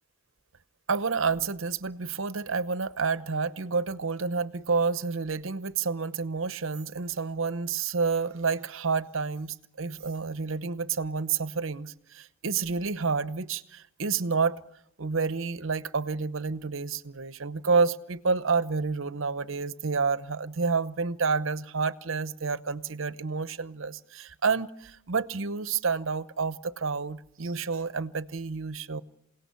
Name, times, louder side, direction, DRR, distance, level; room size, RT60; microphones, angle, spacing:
voice 1, 0.9-14.6 15.0-29.0, right 4 dB, 70° right, 0.9 m, -29 dB
28.0 x 18.0 x 6.9 m
head